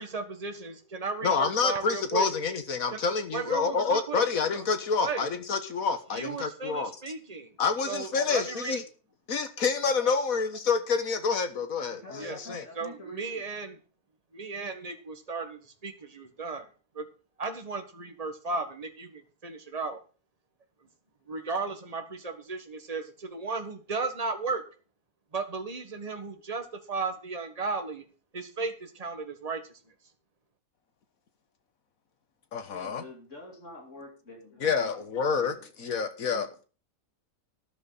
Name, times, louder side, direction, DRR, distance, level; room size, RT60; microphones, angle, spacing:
voice 1, 0.0-2.2 2.9-3.0 3.3-4.2 4.5-4.6 5.0-5.3 6.1-7.5 7.9-8.8 9.9-10.1 12.2-12.4 12.8-13.8 14.3-16.7 16.9-17.1 17.4-20.0 21.3-24.6 25.3-28.0 28.3-29.8, right 4 dB, 25° right, 6 dB, 1.7 m, -35 dB
voice 2, 1.2-6.9 7.6-8.8 9.3-12.6 32.5-33.0 34.6-36.6, left 5 dB, 75° left, 9 dB, 1.8 m, -28 dB
voice 3, 11.9-13.4 32.7-35.7, left 1 dB, 55° left, 0 dB, 2.9 m, -47 dB
12.5 x 11.0 x 4.1 m, 0.36 s
omnidirectional pair, 1.5 m